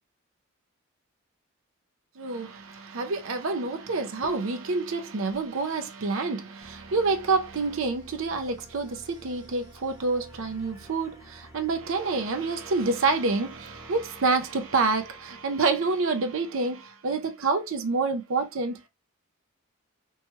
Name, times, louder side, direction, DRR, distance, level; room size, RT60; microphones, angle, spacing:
voice 1, 2.2-18.9, right 3 dB, 60° right, 0.5 m, -28 dB
sound 1, 6.6-16.0, right 1 dB, 15° right, 0.7 m, -51 dB
3.0 x 2.2 x 2.9 m
head